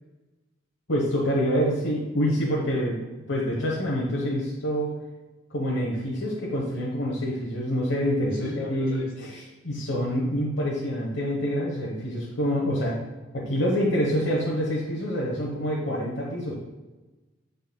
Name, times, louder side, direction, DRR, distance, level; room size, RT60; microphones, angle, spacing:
voice 1, 0.9-5.0 5.5-13.0 13.3-16.6, equal, 65° left, -5 dB, 1.0 m, -26 dB
voice 2, 8.3-9.3, left 1 dB, 90° left, -1 dB, 1.8 m, -39 dB
10.5 x 4.1 x 2.2 m, 1.2 s
head